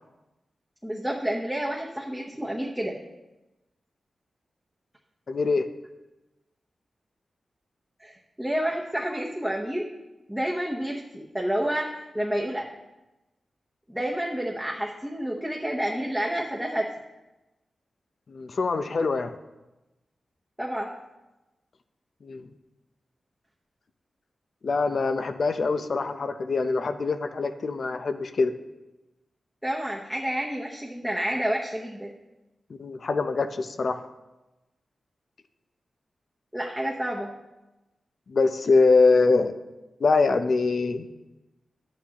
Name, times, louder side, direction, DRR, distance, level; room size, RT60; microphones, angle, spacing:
voice 1, 0.8-3.0 8.0-9.9 10.3-12.7 13.9-16.9 20.6-21.0 29.6-32.1 36.5-37.3, equal, 5° right, -3 dB, 1.0 m, -29 dB
voice 2, 5.3-5.6 18.3-19.3 22.2-22.5 24.6-28.5 32.8-34.0 38.3-39.5 40.0-41.1, left 3 dB, 60° left, 9 dB, 0.6 m, -23 dB
11.5 x 8.6 x 2.9 m, 1.0 s
cardioid pair, 75°, 0 cm